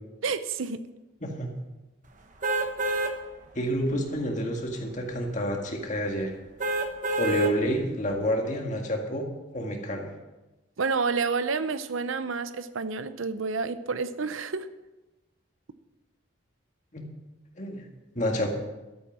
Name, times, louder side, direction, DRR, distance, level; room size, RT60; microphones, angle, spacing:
voice 1, 0.2-0.8 10.8-14.7, right 4 dB, 80° right, 12 dB, 0.7 m, -29 dB
sound 1, 2.4-3.1 3.7-3.8 6.6-7.5 8.1-8.2, right 2 dB, 40° right, 1.0 m, -27 dB
voice 2, 3.6-6.4 7.2-9.3 9.5-10.1 16.9-17.0 17.6-17.8 18.2-18.5, equal, 35° left, 2 dB, 1.9 m, -29 dB
13.0 x 8.1 x 6.1 m, 1.1 s
head